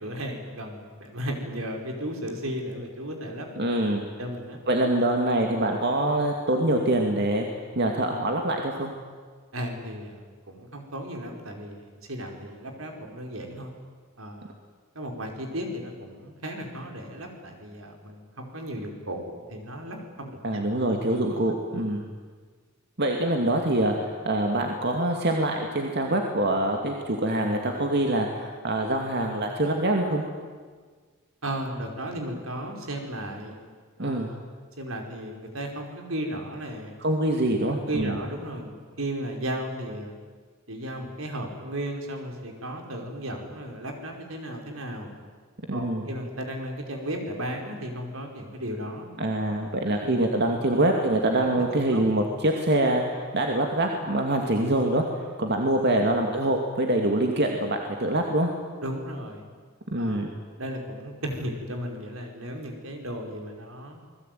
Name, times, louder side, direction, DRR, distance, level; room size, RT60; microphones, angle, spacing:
voice 1, 0.0-3.5 4.2-4.6 9.5-13.7 14.2-14.5 15.0-20.4 21.8-21.9 31.4-33.6 34.0-34.4 34.8-36.9 37.8-40.1 40.7-45.1 45.7-49.1 49.9-50.7 51.4-51.6 51.9-52.0 58.8-59.4 60.0-60.3 60.6-64.0, right 1 dB, 80° right, 3 dB, 5.1 m, -35 dB
voice 2, 3.6-4.1 4.7-7.5 7.8-8.9 20.4-22.0 23.0-30.2 34.0-34.3 37.0-38.2 45.7-46.1 49.2-55.0 55.4-58.5 59.9-60.3, right 1 dB, 55° right, 2 dB, 2.5 m, -25 dB
28.5 x 20.5 x 9.4 m, 1.5 s
head